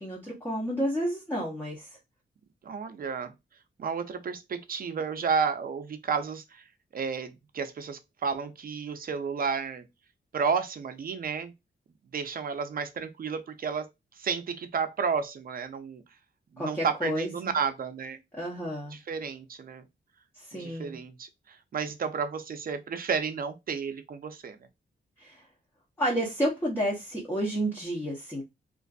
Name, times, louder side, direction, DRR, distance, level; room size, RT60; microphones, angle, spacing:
voice 1, 0.0-2.0 16.6-17.5 18.3-19.0 20.3-21.0 25.2-25.5 26.0-28.4, equal, 10° left, 0.7 m, -31 dB
voice 2, 2.6-3.3 3.8-6.6 6.9-9.8 10.3-11.5 12.1-13.9 14.2-16.0 16.5-18.2 18.9-19.8 20.5-24.6, right 6 dB, 50° right, 0.5 m, -32 dB
2.5 x 2.4 x 2.3 m
wide cardioid pair, 100°, 19 cm